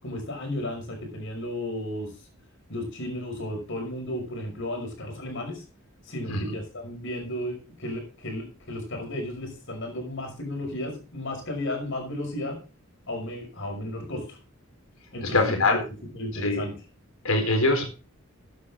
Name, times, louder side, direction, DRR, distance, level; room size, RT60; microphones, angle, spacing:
voice 1, 0.0-2.1 2.7-5.6 6.1-12.6 13.1-14.4 15.1-15.8 16.1-16.7, left 1 dB, 65° left, 2 dB, 5.8 m, -33 dB
voice 2, 15.2-15.8 16.4-16.6 17.2-17.9, left 2 dB, 85° left, 4 dB, 4.2 m, -23 dB
15.0 x 9.7 x 3.8 m, 0.33 s
head